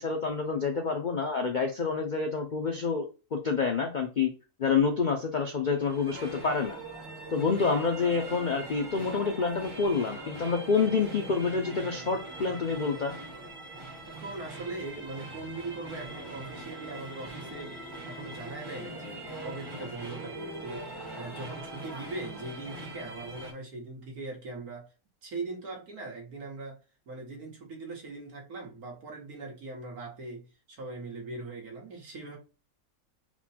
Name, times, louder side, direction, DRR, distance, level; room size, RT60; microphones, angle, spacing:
voice 1, 0.0-4.3 4.6-6.8 7.3-13.1, left 5 dB, 65° left, 0.4 m, -28 dB
sound 1, 5.7-23.5, right 1 dB, 15° right, 1.2 m, -42 dB
voice 2, 14.1-17.8 18.1-20.9 21.1-24.9 25.2-26.8 27.1-32.4, right 3 dB, 70° right, 1.8 m, -40 dB
4.4 x 2.2 x 4.2 m
omnidirectional pair, 1.7 m